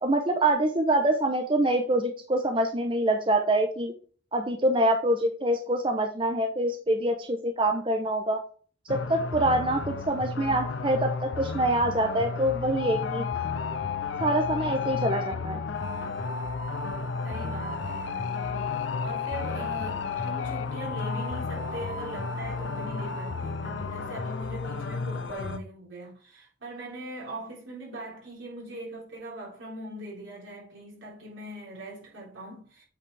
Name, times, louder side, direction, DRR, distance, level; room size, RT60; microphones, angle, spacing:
voice 1, 0.0-3.9 4.3-8.4 8.9-13.2 14.2-15.6, right 1 dB, 25° right, 0.7 m, -25 dB
sound 1, 8.9-25.6, left 5 dB, 75° left, 0.6 m, -32 dB
voice 2, 17.2-32.8, right 1 dB, 85° right, 3.6 m, -41 dB
8.3 x 4.8 x 3.3 m
head